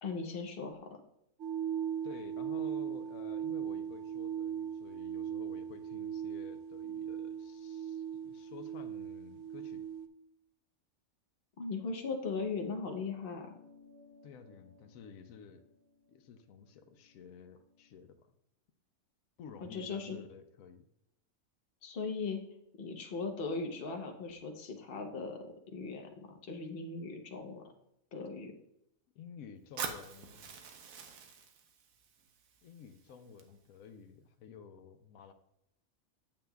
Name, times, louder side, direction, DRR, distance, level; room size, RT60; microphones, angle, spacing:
voice 1, 0.0-0.8 11.6-13.5 19.7-20.2 21.8-22.4 22.8-27.6 28.1-28.5, left 4 dB, 45° left, 3 dB, 1.0 m, -38 dB
sound 1, 1.4-10.1, right 9 dB, 65° right, 0.9 m, -38 dB
voice 2, 2.0-9.8 14.2-15.6 16.1-18.2 19.4-20.8 29.2-30.5 32.6-35.3, left 7 dB, 90° left, 8 dB, 1.0 m, -52 dB
sound 2, 13.2-18.0, left 3 dB, 45° right, 3.1 m, -62 dB
Fire, 29.8-33.8, right 6 dB, 90° right, 1.2 m, -45 dB
8.7 x 7.5 x 2.3 m, 0.77 s
omnidirectional pair, 1.4 m